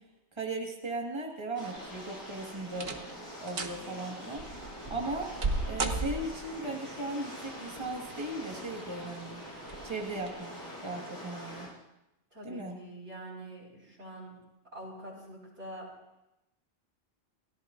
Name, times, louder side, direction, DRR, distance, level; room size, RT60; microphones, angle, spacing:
voice 1, 0.4-4.4 4.9-5.3 5.7-9.4 9.8-10.6 10.8-11.7 12.4-12.8, right 2 dB, 25° right, 0 dB, 1.8 m, -37 dB
sound 1, 1.6-11.7, equal, 20° left, 6.9 m, -44 dB
sound 2, 1.8-2.2 2.7-3.2 3.5-3.8 4.4-6.6 7.8-8.3 8.8-8.9 9.6-9.8 10.2-10.3, right 3 dB, 60° right, 1.4 m, -34 dB
voice 2, 12.3-14.4 14.7-16.0, right 1 dB, 90° right, -4 dB, 5.1 m, -45 dB
28.5 x 17.0 x 2.6 m, 0.90 s
omnidirectional pair, 1.1 m